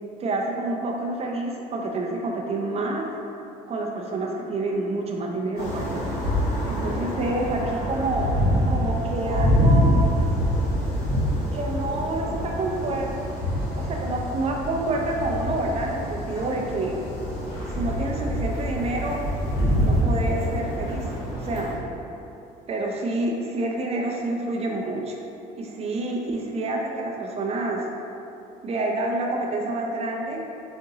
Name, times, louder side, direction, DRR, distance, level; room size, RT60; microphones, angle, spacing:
voice 1, 0.2-3.0 3.7-6.1 6.6-8.3 8.7-10.0 11.5-13.1 13.7-17.0 17.7-19.2 19.8-21.1 21.4-21.7 22.7-25.2 25.6-27.8 28.6-30.4, right 2 dB, 40° right, 0 dB, 0.5 m, -28 dB
sound 1, 5.6-21.8, equal, 75° left, 1.4 m, -25 dB
3.9 x 2.5 x 2.7 m, 2.8 s
cardioid pair, 110°, 17 cm